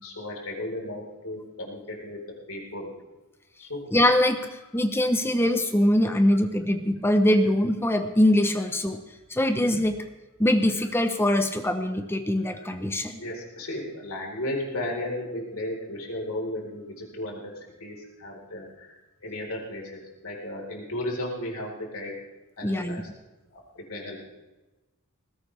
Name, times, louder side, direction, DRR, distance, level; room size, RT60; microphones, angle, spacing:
voice 1, 0.0-2.2 2.5-2.9 3.6-3.8 9.5-9.6 10.8-10.9 12.5-12.7 13.2-18.9 19.2-22.1 22.6-23.0 23.5-24.3, left 1 dB, 75° left, -1 dB, 4.2 m, -35 dB
voice 2, 3.9-4.4 4.7-9.0 9.3-10.0 10.4-13.2 22.6-23.0, left 1 dB, 10° left, 8 dB, 0.8 m, -23 dB
19.5 x 16.5 x 3.4 m, 1.1 s
head